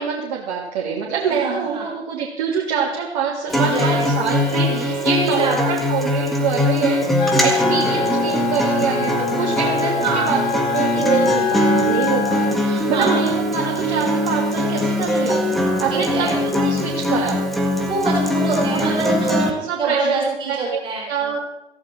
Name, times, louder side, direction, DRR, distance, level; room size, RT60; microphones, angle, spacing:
voice 1, 0.0-15.4 15.8-17.4 18.7-20.8 21.1-21.4, right 6 dB, 35° right, -3 dB, 3.0 m, -25 dB
voice 2, 1.3-1.9 3.5-5.7 10.0-10.4 12.9-13.2 15.9-16.4 17.9-19.3 19.8-21.1, right 3 dB, 15° right, -3 dB, 4.5 m, -25 dB
Acoustic guitar, 3.5-19.5, left 1 dB, ahead, 1.6 m, -21 dB
Wind instrument woodwind instrument, 7.2-12.6, left 9 dB, 45° left, 0.7 m, -25 dB
17.0 x 15.0 x 4.6 m, 0.92 s
figure-of-eight pair, 125°, 34 cm